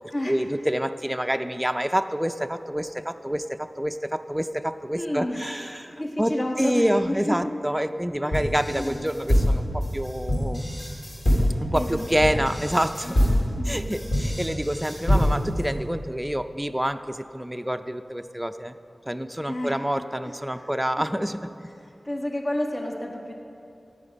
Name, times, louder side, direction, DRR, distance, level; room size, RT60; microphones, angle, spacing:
voice 1, 0.3-10.8 11.6-13.2 13.7-18.7 19.1-21.4, equal, 5° right, 8 dB, 0.4 m, -27 dB
voice 2, 5.0-5.4 5.7-7.4 8.2-8.4 8.7-9.1 11.7-12.5 13.0-13.9 19.5-19.8 20.5-20.7 22.0-23.3, left 1 dB, 40° left, 1 dB, 1.3 m, -31 dB
sound 1, 8.3-15.6, equal, 65° left, 3.5 m, -24 dB
13.5 x 9.8 x 5.2 m, 2.8 s
wide cardioid pair, 60°, 0 cm